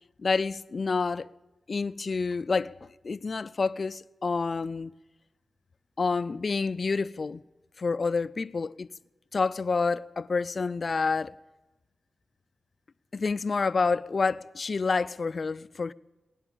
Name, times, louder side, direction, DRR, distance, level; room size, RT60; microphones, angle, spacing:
voice 1, 0.2-1.3 1.7-2.7 3.0-4.9 6.0-7.4 7.8-8.9 9.3-11.3 13.1-15.9, left 4 dB, 55° left, 0.5 m, -28 dB
18.0 x 11.0 x 7.1 m
cardioid pair, 55°, 0 cm